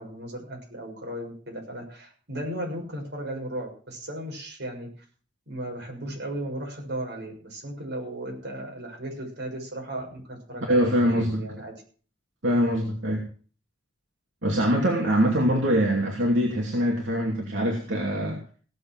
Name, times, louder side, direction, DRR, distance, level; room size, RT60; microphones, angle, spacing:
voice 1, 0.0-4.9 5.5-11.7, right 1 dB, 60° right, 0 dB, 6.3 m, -36 dB
voice 2, 10.7-11.4 12.4-13.3 14.4-18.4, equal, 85° right, -1 dB, 2.7 m, -23 dB
17.0 x 7.6 x 6.0 m, 0.41 s
head